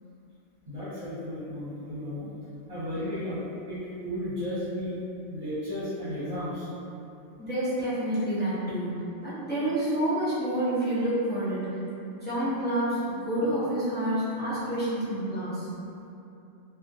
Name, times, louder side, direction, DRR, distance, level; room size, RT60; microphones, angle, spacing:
voice 1, 0.7-2.3 2.7-4.9 5.3-6.7, left 1 dB, 45° right, -13 dB, 1.0 m, -34 dB
voice 2, 7.4-11.7 12.1-15.7, right 1 dB, 15° left, -13 dB, 0.4 m, -28 dB
2.4 x 2.4 x 2.5 m, 2.7 s
omnidirectional pair, 1.3 m